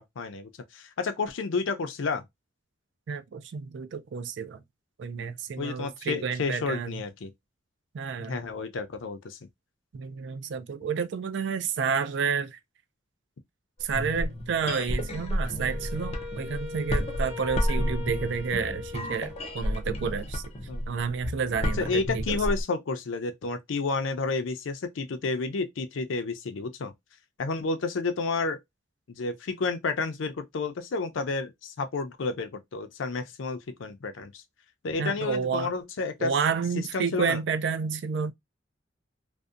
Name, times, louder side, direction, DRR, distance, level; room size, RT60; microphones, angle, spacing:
voice 1, 0.0-2.2 5.6-7.3 8.2-9.4 20.7-20.8 21.8-26.9 27.4-28.6 29.1-34.4 34.8-36.3 36.8-37.4, left 4 dB, 85° left, 0.5 m, -31 dB
voice 2, 3.1-4.6 5.0-7.0 7.9-8.4 9.9-12.6 13.8-20.4 20.9-22.4 35.0-35.7 36.2-38.3, right 6 dB, 65° right, 0.4 m, -30 dB
sound 1, 13.8-22.6, equal, 30° left, 0.5 m, -31 dB
Wind instrument woodwind instrument, 15.6-20.0, left 4 dB, 20° right, 0.8 m, -40 dB
2.6 x 2.1 x 2.3 m
head